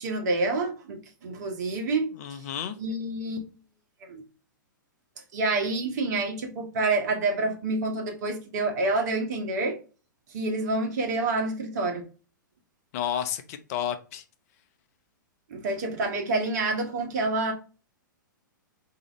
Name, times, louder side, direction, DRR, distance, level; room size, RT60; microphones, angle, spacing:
voice 1, 0.0-2.4 2.8-3.4 4.1-4.2 5.3-9.8 10.3-12.1 15.5-17.5, right 2 dB, 55° right, 1.2 m, -28 dB
voice 2, 2.2-2.8 12.9-14.2, left 9 dB, 50° left, 0.6 m, -31 dB
4.9 x 2.8 x 3.0 m
figure-of-eight pair, 110°, 11 cm